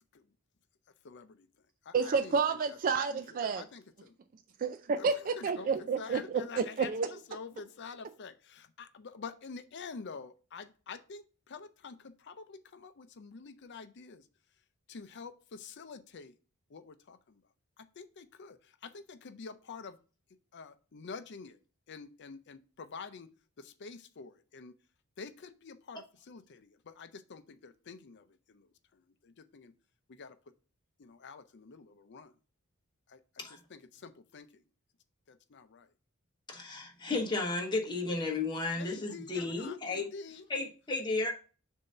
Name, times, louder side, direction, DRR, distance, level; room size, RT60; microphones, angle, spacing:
voice 1, 1.0-1.5 1.8-2.8 3.1-3.2 3.5-4.1 5.0-14.2 14.9-16.4 16.7-17.4 17.8-20.0 20.5-21.6 21.9-23.3 23.6-24.7 25.2-29.7 30.1-30.4 31.0-32.3 33.1-34.6 35.3-35.9 38.7-40.5, left 5 dB, 50° left, 0.5 m, -48 dB
voice 2, 1.9-3.6 4.6-7.1, right 5 dB, 40° right, 0.3 m, -30 dB
voice 3, 36.5-40.1 40.5-41.3, left 3 dB, 20° left, 1.1 m, -33 dB
6.8 x 2.7 x 5.4 m
head